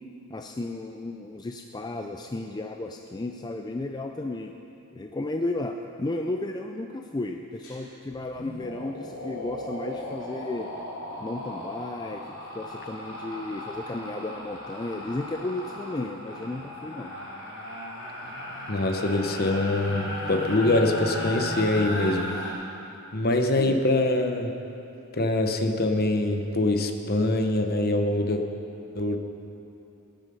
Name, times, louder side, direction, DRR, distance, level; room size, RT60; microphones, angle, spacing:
voice 1, 0.3-4.5 4.9-10.7 11.2-12.3 12.5-17.1 23.4-23.9, left 2 dB, 20° left, 4 dB, 0.4 m, -33 dB
sound 1, 7.6-7.8 8.1-22.5, left 1 dB, 65° left, 3.7 m, -36 dB
voice 2, 18.7-22.3 23.1-24.5 25.1-28.4 28.9-29.2, left 2 dB, 45° left, 5 dB, 0.9 m, -24 dB
18.5 x 9.0 x 5.5 m, 2.8 s
head